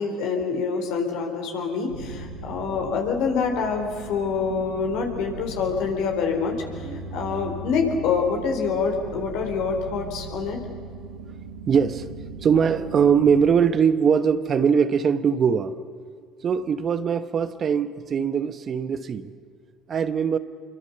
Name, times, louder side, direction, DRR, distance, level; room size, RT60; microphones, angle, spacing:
voice 1, 0.0-10.6, left 5 dB, 70° left, 4.1 m, -26 dB
sound 1, 1.9-13.5, right 3 dB, 85° right, 1.6 m, -38 dB
voice 2, 6.8-7.5 11.7-12.1 12.4-15.8 16.4-19.3 19.9-20.4, right 7 dB, 45° right, 1.2 m, -22 dB
26.5 x 23.5 x 6.8 m
hypercardioid pair, 65°, 0 cm